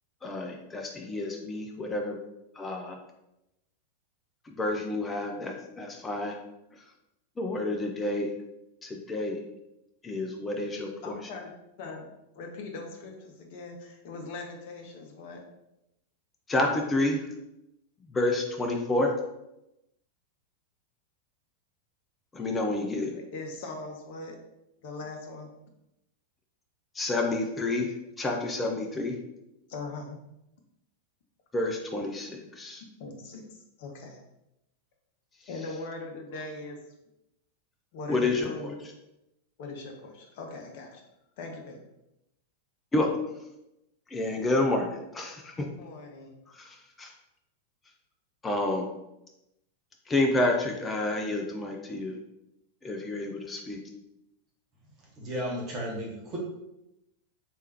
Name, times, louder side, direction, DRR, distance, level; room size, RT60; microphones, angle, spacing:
voice 1, 0.2-2.2 2.5-3.0 4.4-6.4 6.7-6.9 7.4-8.3 8.8-9.4 10.0-11.2 16.5-17.3 18.0-19.1 22.3-23.2 26.9-29.2 31.5-32.8 38.1-38.7 42.9-43.1 44.1-45.6 46.5-47.1 48.4-48.9 50.1-52.2 52.8-53.8, left 2 dB, 15° left, 2 dB, 0.5 m, -29 dB
voice 2, 10.7-11.5 11.8-12.1 12.3-15.4 23.1-24.4 24.8-25.5 29.7-30.2 33.0-33.5 33.8-34.2 35.5-36.8 37.9-38.7 39.6-41.0 41.4-41.8 45.8-46.3, left 3 dB, 50° left, 1 dB, 0.7 m, -40 dB
voice 3, 55.2-56.4, equal, 30° right, -2 dB, 1.3 m, -34 dB
3.5 x 3.3 x 2.8 m, 0.88 s
figure-of-eight pair, 90°, 0 cm